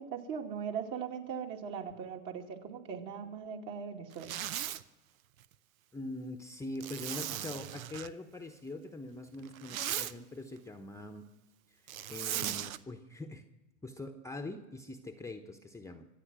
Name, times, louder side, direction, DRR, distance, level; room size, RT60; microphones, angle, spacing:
voice 1, 0.0-4.4, right 7 dB, 45° right, 2 dB, 2.4 m, -39 dB
Zipper (clothing), 4.1-4.8 6.8-8.1 9.4-10.1 11.9-12.8, right 11 dB, 80° right, 0.8 m, -37 dB
voice 2, 5.9-11.2 11.7-11.8 12.1-13.4 13.8-16.1, left 2 dB, 5° left, 4 dB, 0.9 m, -43 dB
25.0 x 8.7 x 6.2 m, 1.1 s
hypercardioid pair, 105°, 41 cm